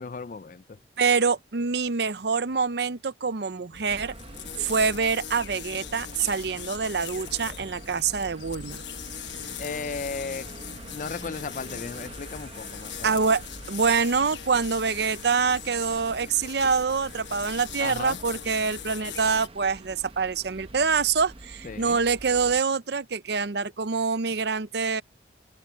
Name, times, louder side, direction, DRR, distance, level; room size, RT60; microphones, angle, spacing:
voice 1, 0.0-0.8 9.6-10.5 10.9-13.2 17.8-18.2 21.6-22.0, left 4 dB, 45° left, 0.4 m, -35 dB
voice 2, 1.0-4.1 4.6-8.8 13.0-13.4 13.7-25.0, right 5 dB, 65° right, 0.6 m, -25 dB
sound 1, 3.7-19.5, left 9 dB, 75° left, 1.1 m, -41 dB
sound 2, 3.9-22.6, right 2 dB, 30° right, 0.8 m, -45 dB
head